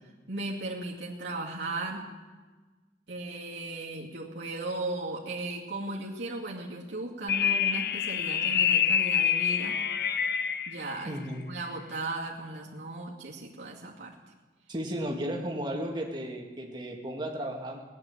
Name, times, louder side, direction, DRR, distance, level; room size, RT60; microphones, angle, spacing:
voice 1, 0.3-2.1 3.1-9.8 10.7-14.2, right 2 dB, 90° right, -4 dB, 2.4 m, -36 dB
sound 1, 7.3-10.8, left 8 dB, 60° left, 0.8 m, -26 dB
voice 2, 11.1-11.4 14.7-17.8, right 1 dB, 25° right, 0 dB, 2.2 m, -34 dB
18.0 x 10.5 x 7.4 m, 1.3 s
head